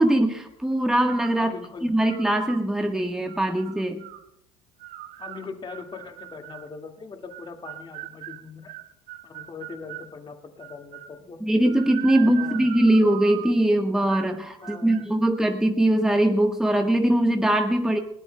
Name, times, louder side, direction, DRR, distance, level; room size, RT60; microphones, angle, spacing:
voice 1, 0.0-1.5 1.8-4.0 11.4-18.0, right 1 dB, 5° right, 4 dB, 1.3 m, -21 dB
sound 1, 1.1-1.5 2.0-2.6 3.3-4.2 4.8-6.7 7.3-10.1 10.6-11.2 11.6-13.6 14.1-14.4 14.6-15.1, right 15 dB, 60° right, 0.9 m, -40 dB
voice 2, 1.4-1.9 5.2-8.7 9.2-11.4 12.1-12.7 14.6-15.1, left 5 dB, 30° left, 4 dB, 2.0 m, -41 dB
20.0 x 18.0 x 2.2 m, 0.81 s
hypercardioid pair, 65°, 16 cm